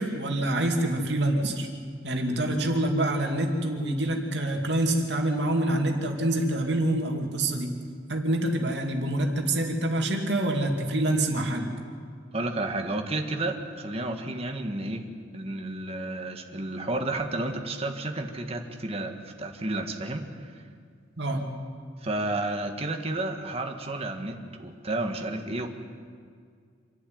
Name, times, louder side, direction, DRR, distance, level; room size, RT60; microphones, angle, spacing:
voice 1, 0.0-1.7 2.0-7.8 8.1-11.7 21.2-21.5, right 1 dB, 65° right, 2 dB, 2.7 m, -26 dB
voice 2, 12.3-15.1 15.3-19.1 19.4-20.6 22.0-25.7, right 2 dB, 30° right, 4 dB, 1.8 m, -31 dB
27.0 x 11.5 x 9.5 m, 2.1 s
head